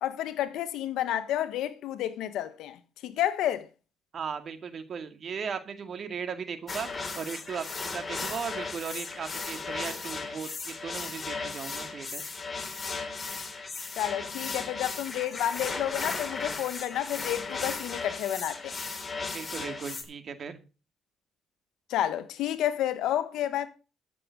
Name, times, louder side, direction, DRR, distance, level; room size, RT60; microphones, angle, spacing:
voice 1, 0.0-3.7 14.0-18.8 21.9-23.7, left 12 dB, 85° left, 1.3 m, -30 dB
voice 2, 4.1-6.9 7.2-12.2 19.3-20.6, right 6 dB, 55° right, 2.2 m, -37 dB
sound 1, 6.7-20.0, left 4 dB, 30° left, 3.3 m, -36 dB
13.0 x 7.6 x 5.3 m
cardioid pair, 90°, 0 cm